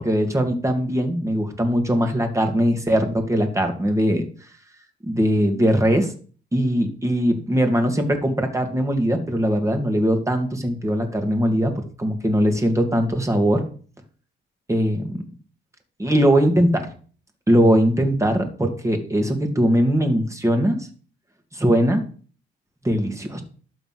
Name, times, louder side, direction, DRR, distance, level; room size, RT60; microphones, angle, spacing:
voice 1, 0.0-4.2 5.0-6.1 6.5-13.6 14.7-15.2 16.0-16.9 17.5-20.9 21.5-22.0 22.8-23.4, equal, 15° right, 5 dB, 2.4 m, -20 dB
12.0 x 4.0 x 7.8 m, 0.42 s
cardioid pair, 90°, 20 cm